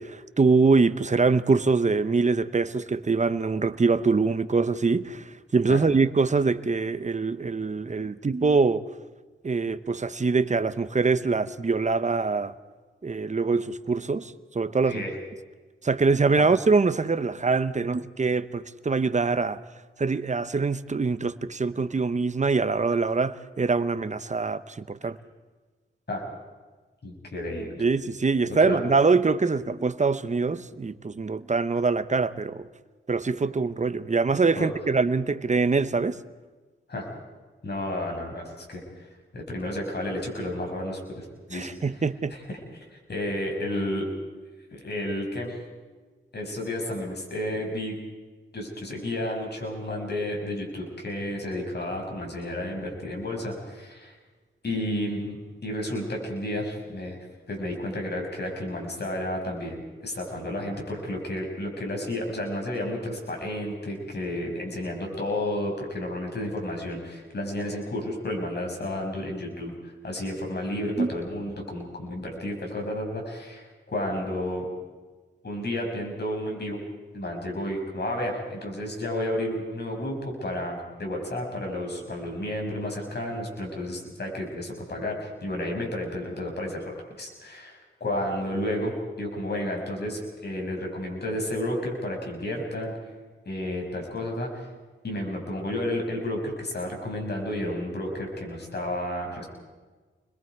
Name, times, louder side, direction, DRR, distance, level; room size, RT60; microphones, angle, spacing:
voice 1, 0.0-5.2 5.5-8.8 9.4-12.5 13.0-15.0 15.8-19.6 20.0-25.2 27.8-32.7 33.1-36.2 41.5-42.4 71.0-71.1, right 4 dB, 35° right, 13 dB, 0.9 m, -24 dB
voice 2, 27.0-27.8 28.5-28.8 34.5-34.7 36.9-37.1 37.6-39.0 39.3-42.0 42.3-42.4 42.7-44.1 44.7-45.5 46.3-48.0 48.5-54.1 54.6-55.4 55.6-57.2 57.5-69.7 70.0-74.7 75.4-76.8 77.1-92.9 93.4-94.7 95.0-99.4, left 1 dB, 50° left, 1 dB, 6.3 m, -31 dB
29.0 x 21.5 x 4.7 m, 1.3 s
cardioid pair, 75°, 21 cm